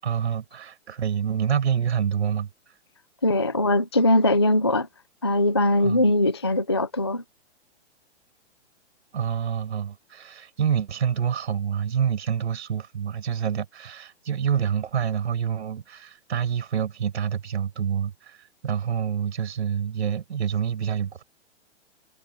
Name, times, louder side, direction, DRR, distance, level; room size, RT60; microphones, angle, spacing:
voice 1, 0.0-2.5 5.8-6.0 9.1-21.2, right 8 dB, 65° right, 6.0 m, -27 dB
voice 2, 3.2-4.9 5.2-7.2, left 1 dB, 25° left, 0.4 m, -21 dB
hypercardioid pair, 175°, 35 cm